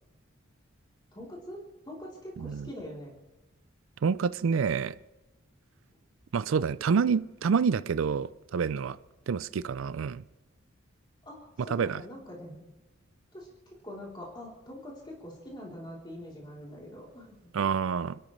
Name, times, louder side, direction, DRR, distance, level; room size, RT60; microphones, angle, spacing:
voice 1, 1.1-3.1 11.2-12.7 13.3-17.7, left 1 dB, 20° left, -4 dB, 3.4 m, -44 dB
voice 2, 2.4-2.7 4.0-5.0 6.3-9.0 9.3-10.2 11.7-12.0 17.5-18.2, right 6 dB, 80° right, 16 dB, 0.4 m, -28 dB
30.0 x 12.5 x 3.2 m, 1.0 s
head